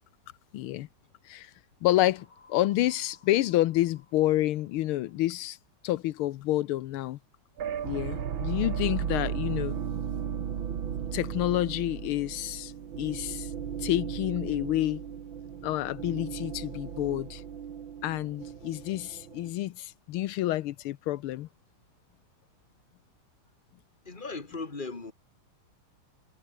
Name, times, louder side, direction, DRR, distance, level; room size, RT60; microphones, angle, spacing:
voice 1, 0.5-0.9 1.2-1.5 1.8-5.6 5.8-7.2 7.8-9.8 11.1-13.5 13.8-15.0 15.6-17.4 18.0-21.5, left 15 dB, 85° left, 1.6 m, -29 dB
sound 1, 1.9-5.7, left 4 dB, 55° left, 4.2 m, -60 dB
sound 2, 7.6-19.5, right 8 dB, 70° right, 2.3 m, -35 dB
voice 2, 24.0-25.1, left 3 dB, 25° left, 2.6 m, -37 dB
omnidirectional pair, 2.3 m